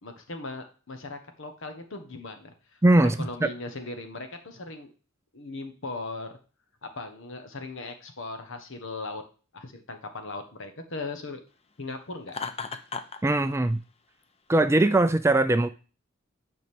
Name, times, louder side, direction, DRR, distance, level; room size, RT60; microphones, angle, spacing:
voice 1, 0.0-4.9 5.3-6.3 6.8-9.2 9.5-11.4 11.8-12.4, left 3 dB, 65° left, 6 dB, 1.3 m, -38 dB
voice 2, 2.8-3.5 13.2-13.8 14.5-15.7, right 2 dB, 15° right, 11 dB, 0.4 m, -21 dB
Laughter, 12.3-13.2, left 5 dB, 30° left, 0.6 m, -34 dB
9.4 x 5.3 x 3.6 m, 0.36 s
head